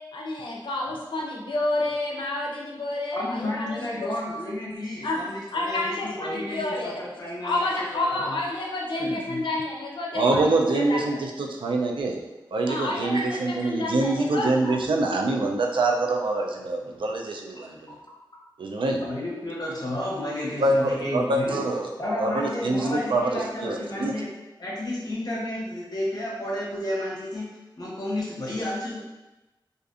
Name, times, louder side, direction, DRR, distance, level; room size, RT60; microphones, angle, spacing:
voice 1, 0.1-3.7 4.0-4.1 5.0-5.2 5.5-6.9 7.4-10.5 10.7-11.0 12.7-14.5, left 2 dB, 85° left, -2 dB, 0.4 m, -29 dB
voice 2, 3.1-8.5 9.3-9.4 14.6-14.7 17.6-17.7 19.0-21.6 22.0-24.3 24.6-27.5 27.8-29.0, left 1 dB, 50° left, -4 dB, 0.8 m, -32 dB
voice 3, 10.1-12.2 12.5-17.8 18.6-19.0 20.6-21.9 22.2-24.1, right 2 dB, 85° right, 1 dB, 0.4 m, -25 dB
2.5 x 2.4 x 2.4 m, 1.1 s
wide cardioid pair, 70°, 8 cm